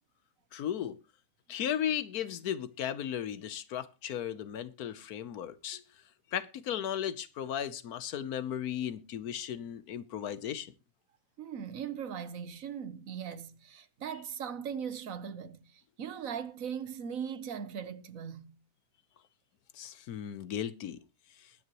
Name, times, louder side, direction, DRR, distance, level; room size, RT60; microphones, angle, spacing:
voice 1, 0.5-1.0 1.5-5.8 6.3-10.7 19.7-21.0, left 9 dB, 85° left, 1.4 m, -35 dB
voice 2, 11.4-18.6, right 7 dB, 65° right, 1.4 m, -39 dB
20.5 x 9.6 x 3.0 m
omnidirectional pair, 1.5 m